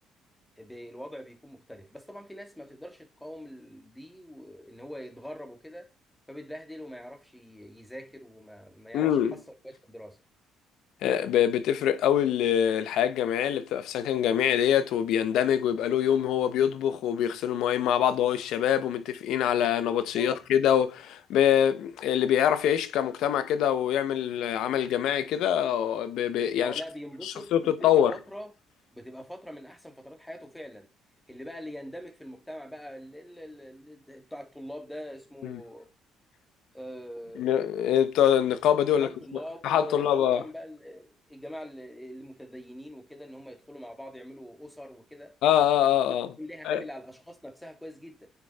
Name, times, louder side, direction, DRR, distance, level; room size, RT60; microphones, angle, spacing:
voice 1, 0.6-5.9 6.3-10.2 20.1-20.4 26.6-28.5 28.9-30.9 31.3-35.9 36.7-37.5 38.9-45.4 46.4-48.3, equal, 5° left, 2.0 m, -43 dB
voice 2, 8.9-9.4 11.0-26.8 27.2-28.2 35.4-35.6 37.4-39.1 39.6-40.4 45.4-46.4 46.6-46.8, left 10 dB, 75° left, 1.1 m, -24 dB
9.2 x 6.3 x 4.3 m
cardioid pair, 120°, 0 cm